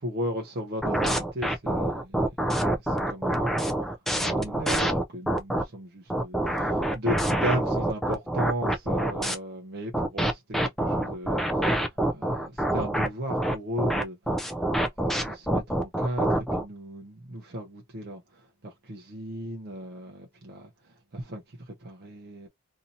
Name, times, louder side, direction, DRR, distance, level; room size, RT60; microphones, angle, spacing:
voice 1, 0.0-3.6 4.2-14.6 15.0-22.5, equal, 45° right, 0.6 m, -36 dB
sound 1, 0.8-5.6 6.1-9.4 9.9-16.6, right 1 dB, ahead, 0.4 m, -26 dB
2.7 x 2.6 x 2.5 m
head